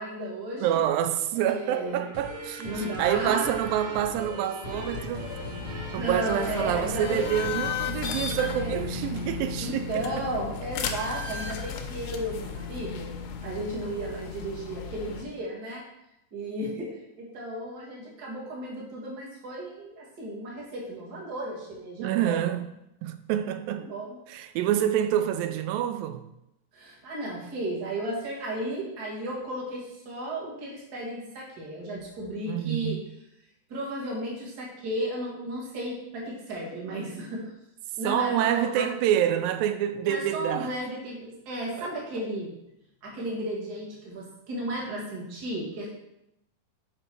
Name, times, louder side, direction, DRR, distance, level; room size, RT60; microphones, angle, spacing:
voice 1, 0.0-0.8 1.3-2.1 2.6-3.6 6.0-7.2 8.5-8.8 9.6-13.1 13.4-15.8 16.3-22.4 23.7-24.2 26.7-33.0 33.7-37.5 38.0-38.9 40.0-42.5 43.0-45.9, right 1 dB, 40° right, 1.6 m, -34 dB
voice 2, 0.6-5.3 5.9-10.3 22.0-22.7 23.0-23.9 24.3-26.3 32.5-33.0 38.0-40.7 41.8-41.9, right 10 dB, 90° right, 2.3 m, -27 dB
sound 1, 1.8-9.2, equal, 65° right, 1.1 m, -40 dB
sound 2, 4.6-15.2, left 5 dB, 80° left, 1.8 m, -35 dB
6.1 x 5.1 x 4.4 m
omnidirectional pair, 4.0 m